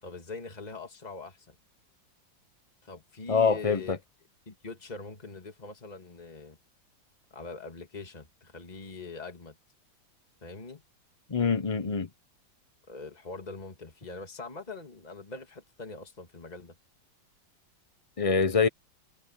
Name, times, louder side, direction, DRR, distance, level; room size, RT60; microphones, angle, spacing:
voice 1, 0.0-1.5 2.8-3.9 4.5-6.6 7.3-9.6 10.4-10.8 12.9-16.8, left 3 dB, 20° left, 2.4 m, -43 dB
voice 2, 3.3-4.0 11.3-12.1 18.2-18.7, left 5 dB, 50° left, 0.4 m, -25 dB
omnidirectional pair, 2.0 m